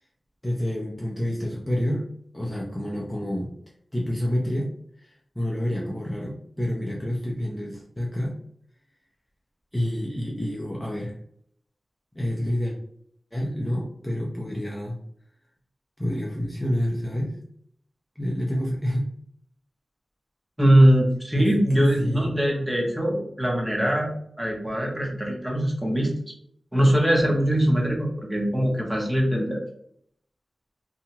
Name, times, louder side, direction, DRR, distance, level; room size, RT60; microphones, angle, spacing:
voice 1, 0.4-2.0 2.3-3.5 3.9-4.7 5.0-8.4 9.7-11.2 12.1-12.8 13.3-15.0 16.0-17.4 18.2-19.1 21.4-21.5 21.7-22.3, equal, 10° left, -2 dB, 0.5 m, -28 dB
voice 2, 20.6-24.1 24.4-26.1 26.7-29.6, right 1 dB, 15° right, -1 dB, 0.8 m, -21 dB
2.8 x 2.3 x 2.8 m, 0.67 s
wide cardioid pair, 70°, 0 cm